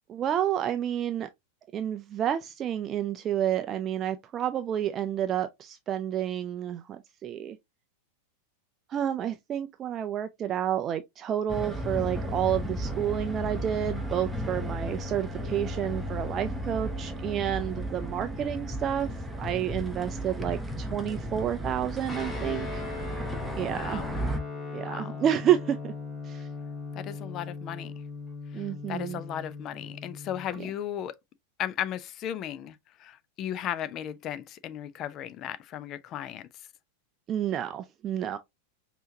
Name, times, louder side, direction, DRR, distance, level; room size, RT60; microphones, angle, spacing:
voice 1, 0.1-1.3 1.7-7.6 8.9-19.1 19.4-22.8 23.6-24.1 24.7-25.9 26.2-26.5 28.5-29.2 30.6-30.7 37.3-38.4, right 10 dB, 30° right, 0.4 m, -30 dB
sound 1, 11.5-24.4, equal, 5° right, 0.8 m, -34 dB
Guitar, 22.1-30.6, left 4 dB, 10° left, 1.5 m, -39 dB
voice 2, 22.4-22.8 23.7-24.3 24.9-25.2 27.0-27.9 28.5-31.2 31.6-36.5, left 10 dB, 35° left, 0.5 m, -36 dB
5.5 x 2.9 x 2.7 m
figure-of-eight pair, 90°, 0 cm